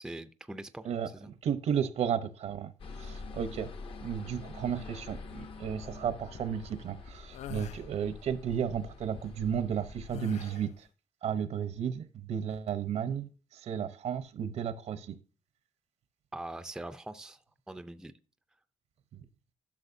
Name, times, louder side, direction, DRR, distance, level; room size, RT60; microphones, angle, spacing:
voice 1, 0.0-0.9 1.1-1.3 16.3-17.4 17.7-18.1, right 1 dB, 5° right, 0.4 m, -42 dB
voice 2, 0.8-3.7 4.0-10.9 11.2-15.2 19.1-19.2, right 8 dB, 70° right, 0.8 m, -33 dB
sound 1, 2.8-10.1, left 4 dB, 50° left, 0.8 m, -45 dB
sound 2, 7.3-7.8 10.1-10.8, left 12 dB, 75° left, 0.4 m, -43 dB
12.0 x 6.4 x 2.6 m
cardioid pair, 130°, 12 cm